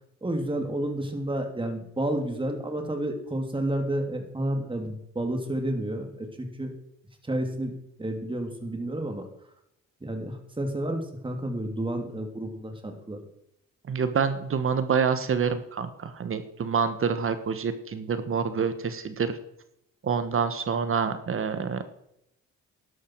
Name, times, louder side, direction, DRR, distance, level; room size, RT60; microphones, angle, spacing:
voice 1, 0.2-6.7 7.2-7.7 8.0-9.3 10.0-13.2, right 1 dB, 15° right, 4 dB, 2.9 m, -30 dB
voice 2, 13.9-19.4 20.0-21.8, right 6 dB, 45° right, 10 dB, 1.4 m, -27 dB
12.0 x 11.5 x 4.7 m, 0.78 s
cardioid pair, 90°, 30 cm